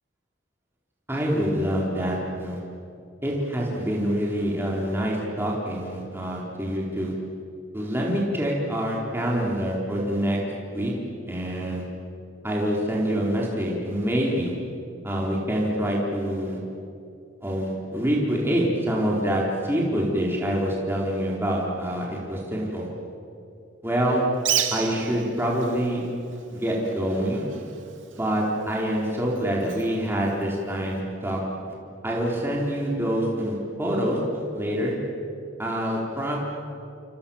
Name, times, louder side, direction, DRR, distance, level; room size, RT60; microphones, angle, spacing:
voice 1, 1.1-2.6 3.2-7.1 7.7-10.4 10.7-10.9 11.3-11.8 12.4-14.5 15.0-16.6 17.4-22.9 23.8-24.2 24.7-26.0 26.5-27.5 28.1-31.4 32.0-34.2 34.5-34.9 35.6-36.4, equal, 10° right, -3 dB, 4.2 m, -26 dB
Bird, 24.3-31.0, right 10 dB, 80° right, 2.5 m, -34 dB
28.5 x 28.0 x 7.3 m, 2.6 s
head